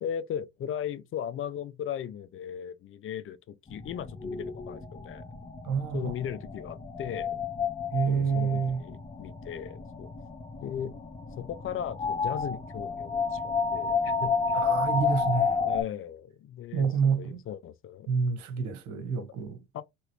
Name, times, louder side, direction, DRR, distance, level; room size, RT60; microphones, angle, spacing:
voice 1, 0.0-5.2 5.9-7.4 8.1-10.1 10.6-10.9 11.4-14.7 15.6-18.1 19.7-19.8, left 9 dB, 40° left, 0.5 m, -37 dB
sound 1, 3.7-15.8, left 5 dB, 20° left, 1.0 m, -31 dB
voice 2, 5.6-6.1 7.9-8.8 14.5-15.6 16.7-17.4 18.1-19.6, right 6 dB, 65° right, 1.2 m, -28 dB
3.0 x 3.0 x 2.9 m
supercardioid pair, 90°, 31 cm